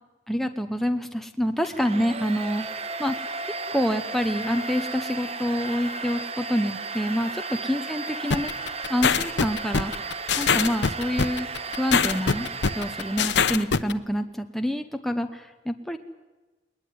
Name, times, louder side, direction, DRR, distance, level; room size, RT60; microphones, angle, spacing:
voice 1, 0.3-2.7 3.0-3.2 3.7-8.5 8.9-10.1 10.4-11.5 11.8-12.5 12.8-16.0, equal, ahead, 6 dB, 0.9 m, -27 dB
Domestic sounds home sounds, 1.6-13.7, right 3 dB, 35° right, 1.1 m, -34 dB
sound 1, 8.3-13.9, left 6 dB, 90° left, 0.9 m, -23 dB
21.0 x 20.0 x 9.5 m, 1.2 s
head